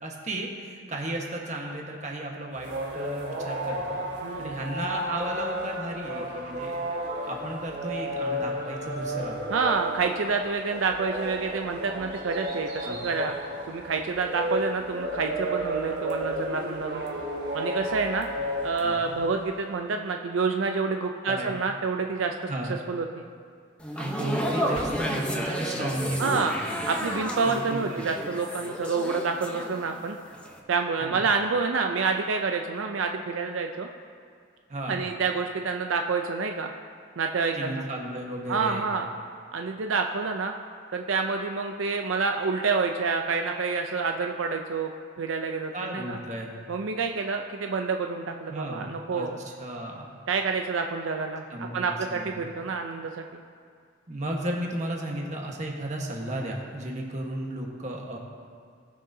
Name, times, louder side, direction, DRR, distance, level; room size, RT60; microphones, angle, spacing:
voice 1, 0.0-4.0 4.4-6.7 7.3-9.4 12.8-13.1 18.8-19.1 21.3-21.6 22.5-22.7 23.9-26.6 27.4-28.1 31.0-31.2 34.7-35.1 37.5-38.9 45.7-46.5 48.5-50.1 51.5-52.5 54.1-58.2, right 1 dB, 35° right, -1 dB, 1.3 m, -34 dB
sound 1, 2.6-19.6, equal, 55° right, 1.4 m, -33 dB
voice 2, 4.2-4.6 9.5-13.3 13.7-17.0 17.5-18.3 18.6-22.3 22.9-23.2 26.2-26.5 26.9-30.2 30.7-33.9 34.9-36.7 37.2-37.9 38.5-39.1 39.5-40.5 40.9-44.9 45.2-46.2 46.7-49.4 50.3-53.2, right 4 dB, 80° right, 4 dB, 0.5 m, -28 dB
sound 2, 23.8-30.1 30.3-30.6, equal, 5° left, 0.8 m, -32 dB
sound 3, 24.3-25.3, equal, 75° left, 1.5 m, -44 dB
19.0 x 6.4 x 2.7 m, 2.1 s
head